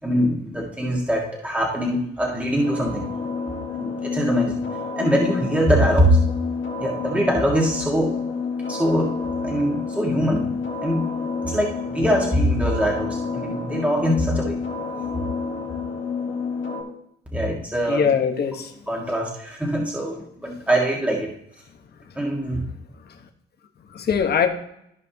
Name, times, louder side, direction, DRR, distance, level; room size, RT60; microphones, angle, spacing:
voice 1, 0.0-3.1 3.7-4.6 4.9-6.2 6.8-8.2 8.7-9.1 9.4-10.5 10.8-11.1 11.4-14.6 17.3-18.0 18.9-21.3 22.2-22.6, equal, 5° right, -2 dB, 2.0 m, -22 dB
sound 1, 2.5-16.8, left 5 dB, 70° left, 2.1 m, -29 dB
voice 2, 17.9-18.9 22.0-22.1 22.9-23.2 23.9-24.5, left 7 dB, 55° left, 5 dB, 1.4 m, -23 dB
15.0 x 5.1 x 3.0 m, 0.75 s
cardioid pair, 90°, 20 cm